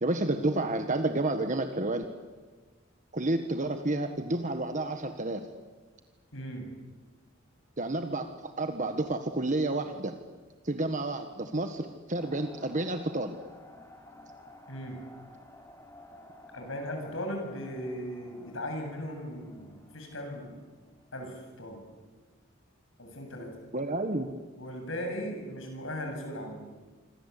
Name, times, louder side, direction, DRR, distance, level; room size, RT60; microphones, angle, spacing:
voice 1, 0.0-2.1 3.1-5.5 7.8-10.1 10.6-13.4 23.7-24.3, right 2 dB, 40° right, 7 dB, 1.4 m, -30 dB
voice 2, 6.3-6.7 14.7-15.0 16.5-20.6 21.1-21.8 23.0-23.5 24.6-26.6, equal, 75° left, 3 dB, 7.8 m, -37 dB
sound 1, 12.2-21.1, left 1 dB, 15° left, 4.0 m, -53 dB
27.0 x 25.5 x 8.4 m, 1.3 s
head